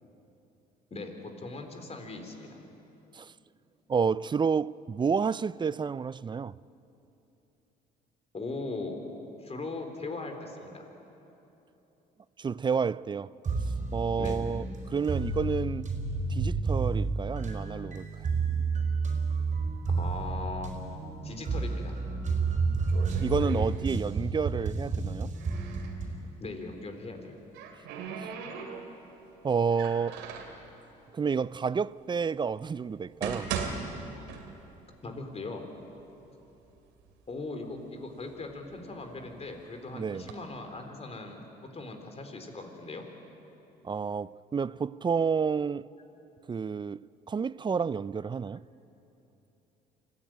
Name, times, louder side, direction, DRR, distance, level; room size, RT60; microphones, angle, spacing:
voice 1, 0.9-2.6 8.3-9.0 9.4-10.8 14.2-14.4 19.9-20.8 21.2-22.0 26.4-27.4 35.0-35.7 37.3-41.4 41.7-43.1, left 3 dB, 35° left, 3.9 m, -39 dB
voice 2, 3.9-6.5 12.4-13.3 13.9-15.9 16.3-18.1 22.7-22.8 23.2-25.3 28.2-28.3 29.4-30.2 31.1-33.5 39.9-40.2 43.8-45.9 46.5-47.0 47.3-48.6, right 6 dB, 25° right, 0.4 m, -30 dB
sound 1, 13.4-26.2, right 3 dB, 45° right, 4.5 m, -31 dB
sound 2, 22.4-24.3 24.5-26.0 27.1-29.1 29.7-30.6 31.4-31.5 32.2-32.3 32.9-34.9 35.2-35.3 36.0-36.1 36.5-37.1 37.7-39.3 40.0-40.3, right 6 dB, 85° right, 2.7 m, -39 dB
25.5 x 16.5 x 9.2 m
supercardioid pair, 75°, 18 cm